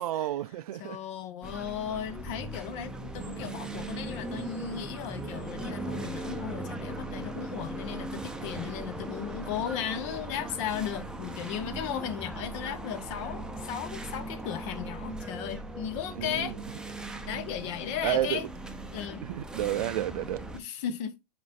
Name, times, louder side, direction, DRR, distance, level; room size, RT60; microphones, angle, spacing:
voice 1, 0.0-1.0 16.1-16.6 18.0-18.4 19.2-20.5, right 13 dB, 60° right, 0.4 m, -31 dB
voice 2, 0.8-16.6 17.3-18.4 18.9-19.2 20.5-21.2, left 9 dB, 45° left, 1.3 m, -36 dB
sound 1, 1.4-20.6, right 2 dB, 5° right, 0.7 m, -39 dB
9.4 x 4.3 x 2.6 m
hypercardioid pair, 115°, 21 cm